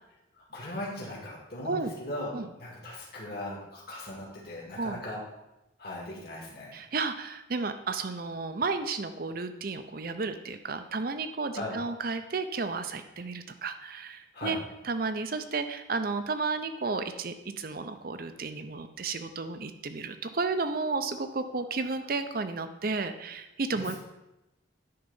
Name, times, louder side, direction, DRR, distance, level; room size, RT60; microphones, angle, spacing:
voice 1, 0.3-5.2 5.8-6.8 11.5-11.8 14.3-14.6 23.7-24.0, left 1 dB, 50° left, -4 dB, 2.0 m, -38 dB
voice 2, 6.7-14.6 14.8-24.0, right 4 dB, 50° right, 9 dB, 0.6 m, -32 dB
10.5 x 3.9 x 5.5 m, 0.93 s
head